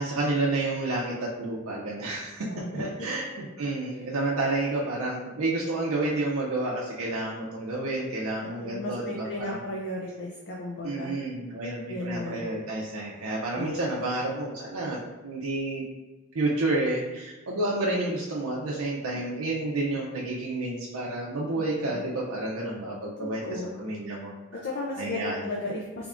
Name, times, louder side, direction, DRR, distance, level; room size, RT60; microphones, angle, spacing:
voice 1, 0.0-9.6 10.8-15.8 16.3-24.3 25.0-25.4, right 2 dB, 85° right, -4 dB, 0.5 m, -30 dB
voice 2, 2.4-3.1 8.4-11.1 11.9-12.4 13.5-13.9 19.3-19.5 21.8-22.0 23.2-23.8 24.5-26.1, left 2 dB, 50° left, -3 dB, 0.4 m, -35 dB
3.4 x 3.4 x 2.4 m, 1.2 s
head